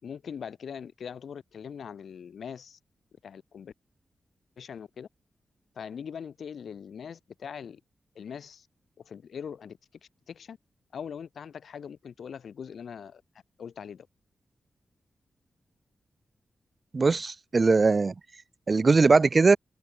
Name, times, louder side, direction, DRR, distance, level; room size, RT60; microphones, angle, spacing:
voice 1, 0.0-2.8 3.2-3.7 4.6-5.1 5.7-7.8 8.1-8.7 9.0-9.8 10.3-10.6 10.9-13.2 13.6-14.1, left 7 dB, 80° left, 5.2 m, -41 dB
voice 2, 16.9-18.1 18.7-19.6, right 4 dB, 45° right, 2.1 m, -20 dB
open air
cardioid pair, 75°, 0 cm